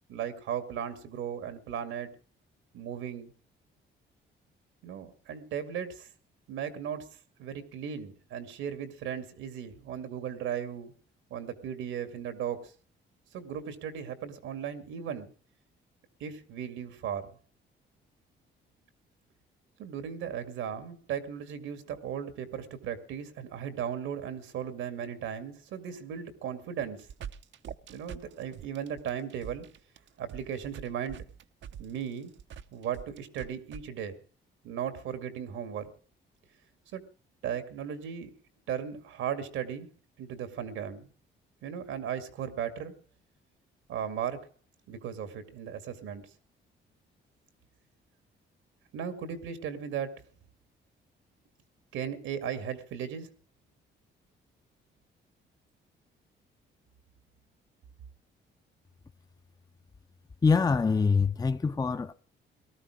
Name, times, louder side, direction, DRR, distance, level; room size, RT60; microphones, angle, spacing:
voice 1, 0.1-2.1 2.7-3.3 4.8-6.1 6.5-7.1 7.4-10.9 11.3-12.7 13.3-15.3 16.2-17.3 19.8-27.1 27.9-29.7 30.2-31.2 31.8-32.3 32.7-34.1 34.6-35.8 36.9-37.0 37.4-38.3 38.7-39.9 40.2-41.1 41.6-42.9 43.9-44.5 44.9-46.3 48.9-50.3 51.9-53.3, right 8 dB, 90° right, 2.2 m, -36 dB
sound 1, 26.8-33.8, right 8 dB, 70° right, 0.8 m, -44 dB
voice 2, 60.4-62.1, left 5 dB, 20° left, 0.6 m, -24 dB
18.5 x 13.0 x 4.9 m
cardioid pair, 90°, 20 cm